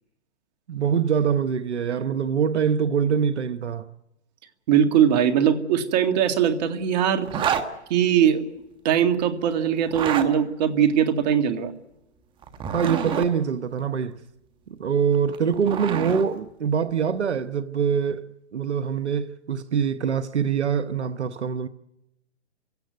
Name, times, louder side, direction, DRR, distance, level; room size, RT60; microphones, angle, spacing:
voice 1, 0.7-3.9 12.7-14.2 14.7-18.3 18.5-21.7, right 7 dB, 85° right, 1.1 m, -24 dB
voice 2, 4.7-7.3 7.9-8.4 8.8-11.7, right 9 dB, 40° right, 2.1 m, -21 dB
Zipper (clothing), 7.2-7.7 9.8-10.3 12.4-13.3 15.1-16.2, right 8 dB, 15° right, 1.3 m, -27 dB
28.5 x 16.5 x 9.3 m
hypercardioid pair, 140°, 33 cm